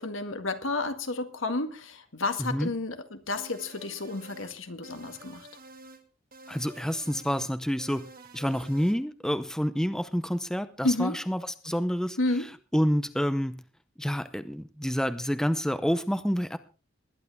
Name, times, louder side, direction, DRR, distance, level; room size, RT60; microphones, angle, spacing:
voice 1, 0.0-5.5 10.8-11.2 12.2-12.5, left 2 dB, 85° left, 7 dB, 1.9 m, -31 dB
voice 2, 2.4-2.7 6.5-8.0 8.3-12.2 12.7-13.6 14.0-16.6, equal, 5° left, 11 dB, 0.7 m, -28 dB
sound 1, 3.3-4.5 4.8-6.0 6.3-7.5 7.8-9.0, right 2 dB, 45° right, 2.0 m, -49 dB
20.5 x 11.0 x 3.5 m, 0.34 s
head